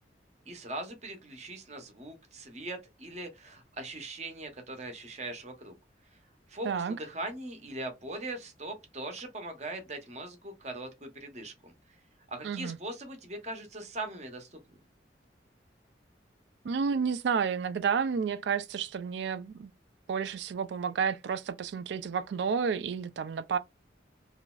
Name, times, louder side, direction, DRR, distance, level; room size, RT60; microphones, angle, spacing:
voice 1, 0.5-5.7 6.5-11.7 12.3-14.6, right 2 dB, 35° right, 0.7 m, -40 dB
voice 2, 6.6-7.0 12.4-12.8 16.6-19.7 20.1-23.6, right 6 dB, 70° right, 0.3 m, -31 dB
2.9 x 2.5 x 2.3 m
head